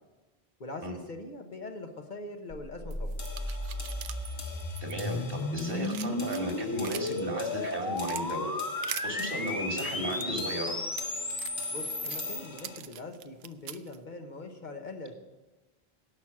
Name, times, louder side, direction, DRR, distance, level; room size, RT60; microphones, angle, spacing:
voice 1, 0.6-3.2 11.7-15.1, left 2 dB, 50° left, 4 dB, 1.2 m, -42 dB
sound 1, 2.5-12.4, left 2 dB, 25° left, 0.8 m, -34 dB
sound 2, 2.9-5.4 5.7-7.2 7.6-8.2 8.8-9.1 9.8-14.0, right 10 dB, 80° right, 0.8 m, -42 dB
sound 3, 3.2-12.8, left 3 dB, 75° left, 2.0 m, -46 dB
voice 2, 4.8-10.7, right 1 dB, 60° right, 2 dB, 2.2 m, -35 dB
17.5 x 6.2 x 6.1 m, 1.1 s
omnidirectional pair, 1.0 m